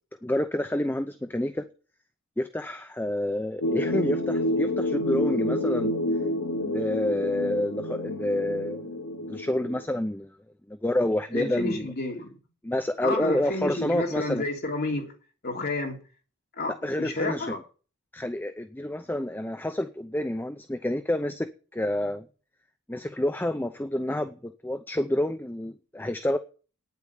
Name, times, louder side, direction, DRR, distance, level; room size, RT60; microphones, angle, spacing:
voice 1, 0.2-1.6 2.4-5.9 6.5-10.3 10.7-11.9 12.6-14.4 16.8-17.6 18.1-22.3 22.9-26.4, left 1 dB, 10° left, 0.6 m, -28 dB
sound 1, 3.6-9.8, left 1 dB, 90° left, 1.6 m, -28 dB
voice 2, 11.3-12.3 13.0-15.1 15.4-16.0 16.6-17.6, left 2 dB, 50° left, 3.3 m, -30 dB
9.6 x 8.2 x 8.7 m
head